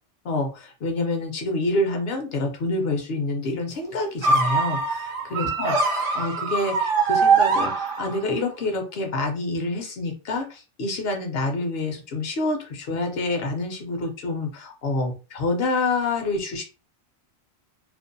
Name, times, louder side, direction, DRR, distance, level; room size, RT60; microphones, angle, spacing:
voice 1, 0.2-16.6, left 2 dB, 65° left, 4 dB, 0.8 m, -27 dB
sound 1, 4.2-8.4, right 4 dB, 60° right, 0.7 m, -22 dB
2.5 x 2.1 x 2.5 m, 0.33 s
omnidirectional pair, 1.2 m